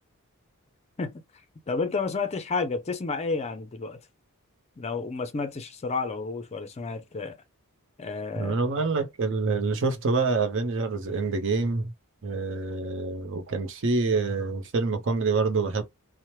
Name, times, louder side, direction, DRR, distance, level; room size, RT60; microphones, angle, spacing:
voice 1, 1.7-4.0 4.8-7.4 8.0-8.6, left 4 dB, 30° left, 0.4 m, -31 dB
voice 2, 8.4-11.9 12.2-15.8, right 4 dB, 60° right, 0.7 m, -26 dB
2.9 x 2.0 x 3.0 m
head